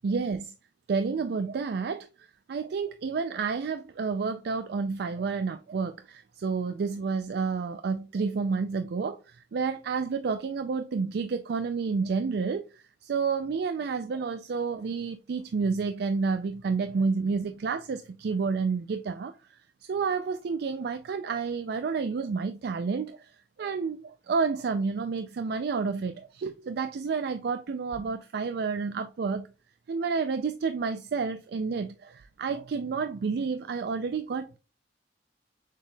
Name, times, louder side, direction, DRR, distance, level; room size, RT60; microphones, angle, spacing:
voice 1, 0.0-0.5 0.9-23.3 23.6-29.5 29.9-34.6, right 5 dB, 65° right, 0.4 m, -30 dB
6.5 x 3.5 x 2.2 m
head